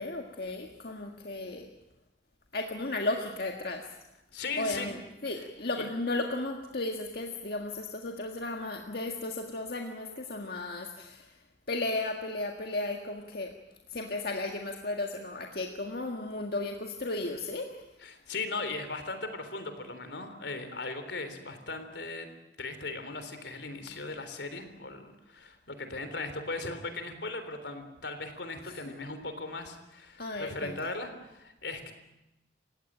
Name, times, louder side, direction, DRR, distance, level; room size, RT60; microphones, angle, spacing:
voice 1, 0.0-1.7 2.5-3.8 4.6-5.0 5.2-11.3 11.7-13.5 13.9-17.7 28.6-28.8 30.2-30.7, left 2 dB, 60° left, 2 dB, 1.8 m, -34 dB
voice 2, 4.3-4.9 5.8-5.9 18.0-22.3 22.6-31.9, left 3 dB, 80° left, 9 dB, 3.6 m, -38 dB
29.0 x 16.5 x 9.0 m, 0.92 s
head